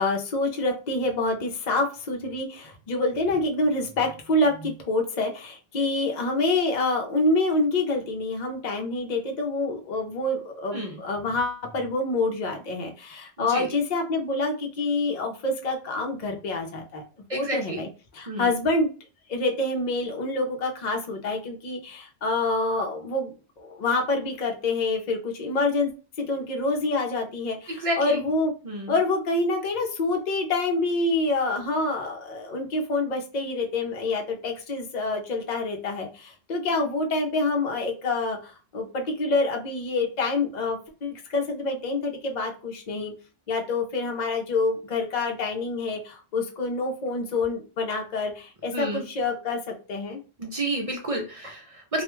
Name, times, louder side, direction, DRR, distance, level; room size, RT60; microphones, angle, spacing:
voice 1, 0.0-17.0 17.3-18.9 19.3-25.9 26.2-28.5 28.9-43.1 43.5-50.2, left 2 dB, 50° left, 2 dB, 0.7 m, -27 dB
voice 2, 17.3-17.8 18.3-18.5 27.7-28.2 28.6-28.9 48.7-49.0 50.4-52.0, right 1 dB, 45° right, 1 dB, 0.5 m, -30 dB
2.3 x 2.2 x 3.0 m, 0.34 s
omnidirectional pair, 1.0 m